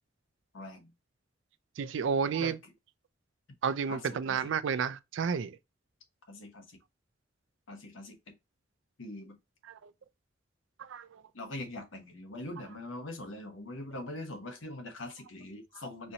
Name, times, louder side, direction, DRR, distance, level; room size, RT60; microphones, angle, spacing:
voice 1, 0.5-0.9 2.4-2.5 3.9-4.5 6.3-6.8 7.7-8.3 9.0-9.4 11.3-16.1, left 1 dB, 90° left, 1.0 m, -42 dB
voice 2, 1.8-2.6 3.6-5.6 9.7-9.9 10.8-11.2, right 6 dB, 75° right, 0.4 m, -31 dB
4.3 x 2.6 x 2.7 m
head